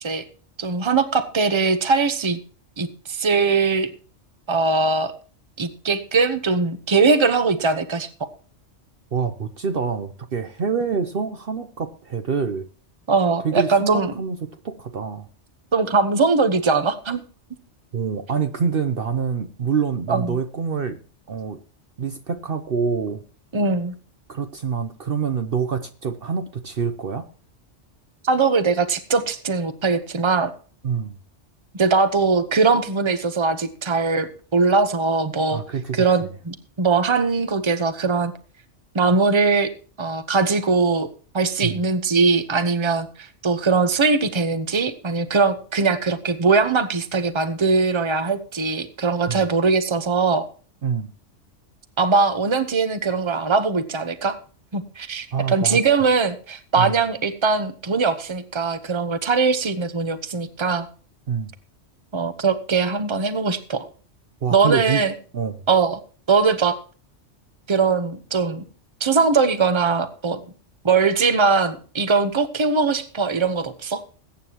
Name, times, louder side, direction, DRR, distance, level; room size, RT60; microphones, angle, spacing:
voice 1, 0.6-2.4 2.8-3.9 4.5-5.1 5.6-8.3 13.1-14.1 15.7-17.2 20.1-20.4 23.5-23.9 28.2-30.5 31.7-35.6 35.9-38.3 38.9-39.7 40.0-41.1 41.3-50.5 52.0-54.4 54.7-60.9 62.1-63.9 64.5-65.1 65.7-66.0 66.3-66.8 67.7-68.6 69.0-70.4 70.8-74.0, right 4 dB, 25° right, 10 dB, 1.0 m, -21 dB
voice 2, 9.1-12.7 13.4-15.3 17.9-21.0 21.3-21.6 22.0-23.2 24.3-27.2 30.8-31.2 35.5-36.1 41.6-41.8 49.3-49.4 50.8-51.1 55.3-55.8 56.8-57.0 61.3-61.5 64.4-65.0 65.3-65.6, right 6 dB, 55° right, 8 dB, 1.0 m, -26 dB
21.5 x 9.1 x 3.0 m, 0.40 s
omnidirectional pair, 1.2 m